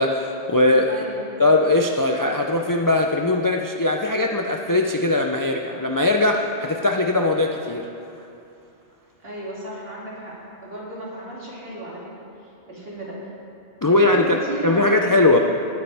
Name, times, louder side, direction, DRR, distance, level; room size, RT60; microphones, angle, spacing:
voice 1, 0.0-1.1 1.4-7.9 13.8-14.4 14.6-15.4, left 2 dB, 30° left, 2 dB, 0.4 m, -20 dB
voice 2, 0.9-1.3 9.2-15.4, right 1 dB, 60° right, -6 dB, 2.9 m, -35 dB
18.0 x 9.4 x 3.5 m, 2.7 s
omnidirectional pair, 1.1 m